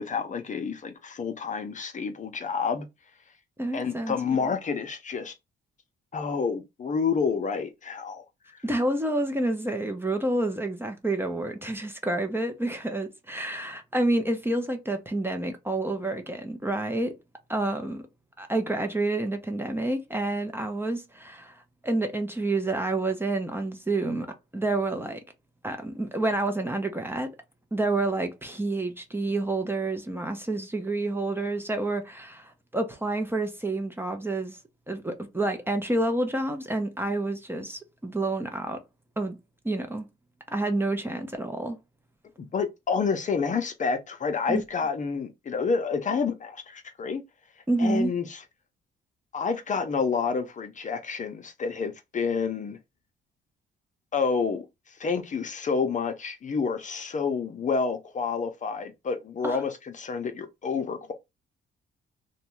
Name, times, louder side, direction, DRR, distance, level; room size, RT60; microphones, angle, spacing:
voice 1, 0.0-2.9 3.7-5.3 6.1-8.2 42.4-47.2 47.8-48.4 49.3-52.8 54.1-54.6 55.0-61.1, left 5 dB, 40° left, 0.6 m, -29 dB
voice 2, 3.6-4.5 8.6-17.1 17.5-18.0 18.4-24.3 24.5-25.2 25.6-27.3 27.7-34.6 34.9-38.8 39.2-39.4 39.6-40.1 40.5-41.8 44.5-44.6 47.7-48.1 59.4-59.6, right 2 dB, 10° right, 0.6 m, -29 dB
2.6 x 2.2 x 3.0 m
cardioid pair, 90°, 20 cm